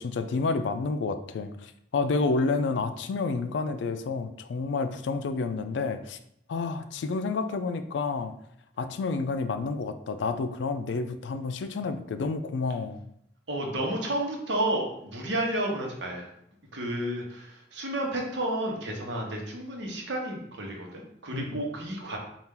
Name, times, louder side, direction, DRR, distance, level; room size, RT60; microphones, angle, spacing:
voice 1, 0.0-6.2 6.5-8.3 8.8-13.0 21.3-21.6, left 4 dB, 85° left, 10 dB, 0.4 m, -29 dB
voice 2, 13.5-16.3 16.7-22.2, right 1 dB, 85° right, 0 dB, 0.9 m, -31 dB
4.2 x 2.4 x 3.7 m, 0.73 s
head